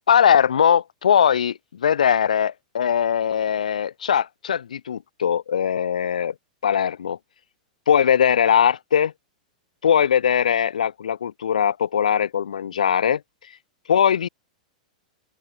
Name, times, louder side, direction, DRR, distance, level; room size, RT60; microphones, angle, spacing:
voice 1, 0.1-6.3 6.6-7.2 7.9-9.1 9.8-13.2 13.9-14.3, left 8 dB, 75° left, 2.1 m, -20 dB
open air
hypercardioid pair, 100°, 4 cm